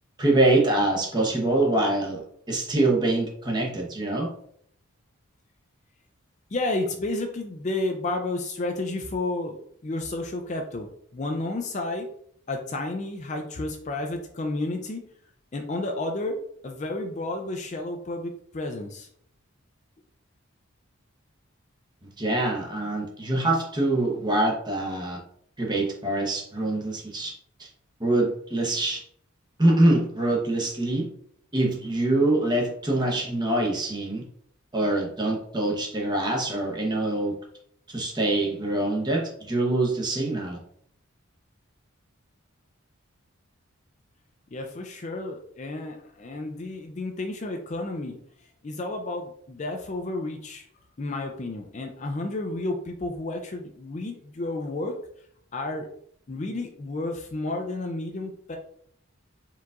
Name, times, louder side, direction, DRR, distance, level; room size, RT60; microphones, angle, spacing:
voice 1, 0.2-4.3 22.0-25.2 25.6-27.3 27.6-27.7 28.0-29.0 29.6-31.1 31.5-34.2 34.7-37.4 37.9-40.6, right 2 dB, 20° right, -1 dB, 0.8 m, -24 dB
voice 2, 6.5-12.1 12.5-15.0 15.5-19.1 44.5-48.2 48.6-50.7 51.0-55.0 55.5-55.9 56.3-58.6, left 2 dB, 35° left, 3 dB, 0.4 m, -31 dB
4.5 x 3.8 x 2.4 m, 0.66 s
head